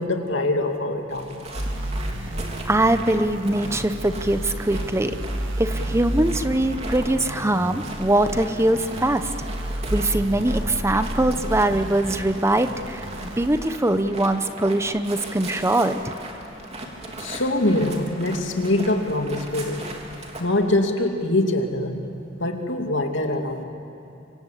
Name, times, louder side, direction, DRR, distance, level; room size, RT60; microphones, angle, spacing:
voice 1, 0.0-1.4 17.0-19.9 20.4-22.0 22.4-23.6, left 1 dB, 75° left, 4 dB, 2.6 m, -24 dB
sound 1, 1.1-20.4, right 2 dB, 35° right, 3.2 m, -39 dB
sound 2, 1.5-13.5, right 1 dB, 90° right, 2.1 m, -31 dB
voice 2, 2.6-5.2 5.6-9.3 9.9-13.1 13.4-15.9, right 1 dB, 15° right, 9 dB, 0.9 m, -22 dB
25.5 x 25.5 x 8.5 m, 2.8 s
head